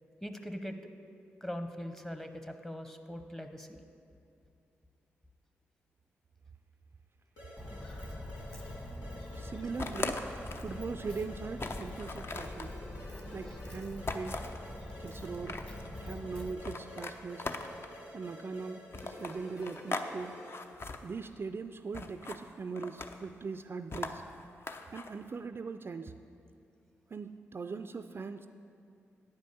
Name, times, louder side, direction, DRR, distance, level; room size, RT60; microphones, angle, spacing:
voice 1, 0.2-0.8 1.4-3.8 8.1-8.2 9.5-9.7 13.4-13.6, equal, 5° left, 7 dB, 0.8 m, -42 dB
sound 1, 7.4-20.7, left 1 dB, 90° left, 1.8 m, -50 dB
Walk footsteps, 7.6-16.5, left 1 dB, 20° left, 1.3 m, -44 dB
voice 2, 9.3-10.2 10.6-12.8 13.3-14.5 15.0-15.6 16.0-17.5 18.1-20.4 21.0-24.2 24.9-26.1 27.1-28.5, right 4 dB, 40° right, 9 dB, 0.3 m, -40 dB
sound 2, 9.8-10.7 11.1-11.2 11.6-12.7 14.1-14.6 15.2-15.9 16.6-18.0 18.9-20.1 20.4-21.0 21.9-22.4 22.8-23.3 23.9-25.1, left 3 dB, 45° left, 0.6 m, -39 dB
8.9 x 5.2 x 6.9 m, 2.5 s
supercardioid pair, 45°, 6 cm